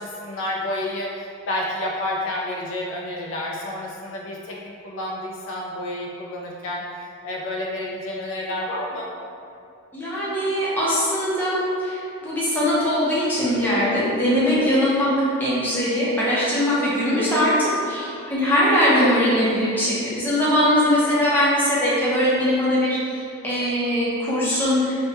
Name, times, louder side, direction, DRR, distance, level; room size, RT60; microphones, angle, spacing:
voice 1, 0.0-4.6 4.8-9.1 21.0-21.2, left 1 dB, 60° left, -2 dB, 0.3 m, -30 dB
voice 2, 9.9-25.0, equal, 10° left, -9 dB, 0.6 m, -21 dB
3.2 x 2.1 x 2.8 m, 2.5 s
head